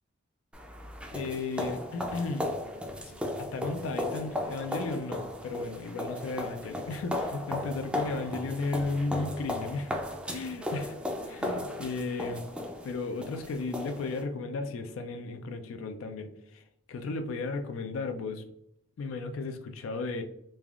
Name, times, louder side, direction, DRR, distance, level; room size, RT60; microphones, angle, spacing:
sound 1, 0.5-14.2, left 1 dB, 5° right, 0.3 m, -36 dB
voice 1, 1.1-2.5 3.0-3.1 3.4-9.9 10.3-10.9 11.3-12.5 12.8-16.6 16.9-18.4 19.0-20.2, left 3 dB, 85° left, 6 dB, 0.3 m, -34 dB
sound 2, 2.4-17.4, left 3 dB, 60° right, 0.7 m, -59 dB
3.3 x 2.2 x 2.3 m, 0.74 s
head